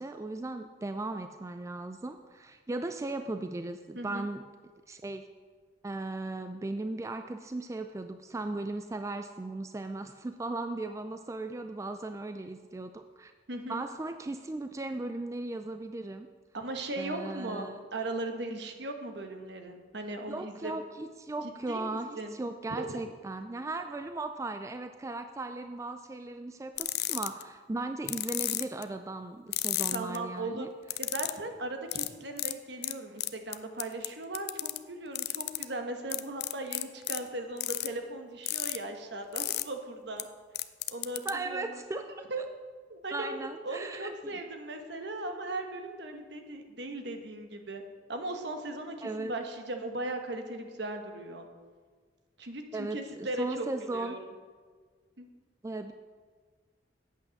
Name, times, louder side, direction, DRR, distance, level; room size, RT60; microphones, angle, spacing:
voice 1, 0.0-4.4 4.9-5.3 5.8-13.3 13.7-16.3 17.0-17.7 20.3-30.7 41.2-42.0 43.1-44.4 49.0-49.3 52.7-54.2 55.6-55.9, right 2 dB, 15° right, 8 dB, 0.3 m, -37 dB
voice 2, 3.9-4.3 13.5-13.8 16.5-20.8 21.7-22.4 22.7-22.9 29.9-30.7 31.0-40.3 40.9-42.0 42.3-42.4 42.9-47.8 48.1-51.5 52.4-53.7 53.9-54.3 55.2-55.3, right 2 dB, 65° right, 5 dB, 1.2 m, -38 dB
sound 1, 26.8-27.4 28.1-28.8 29.5-30.2 30.9-31.4 31.9-32.1 32.4-32.5 32.8-32.9 33.2-34.1 34.3-34.8 35.1-35.6 36.1-37.2 37.6-37.9 38.5-38.8 39.4-39.6 40.2-40.3 40.5-41.3, left 16 dB, 60° left, 0.4 m, -32 dB
8.6 x 8.3 x 6.3 m, 1.5 s
head